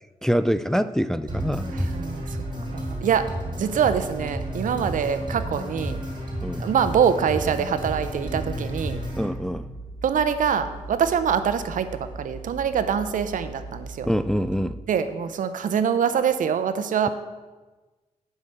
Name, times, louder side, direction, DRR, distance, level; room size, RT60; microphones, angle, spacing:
voice 1, 0.2-1.9 4.7-4.9 6.4-6.7 9.2-9.7 14.1-14.8, equal, 5° left, 13 dB, 0.3 m, -25 dB
sound 1, 1.3-9.3, right 1 dB, 35° right, 3.4 m, -31 dB
voice 2, 1.7-2.2 2.7-3.3 3.6-6.0 6.6-9.0 10.0-14.1 14.9-17.1, right 7 dB, 75° right, 11 dB, 0.7 m, -24 dB
sound 2, 7.8-14.7, right 2 dB, 25° left, 3.5 m, -40 dB
8.0 x 5.7 x 6.5 m, 1.2 s
cardioid pair, 85°, 14 cm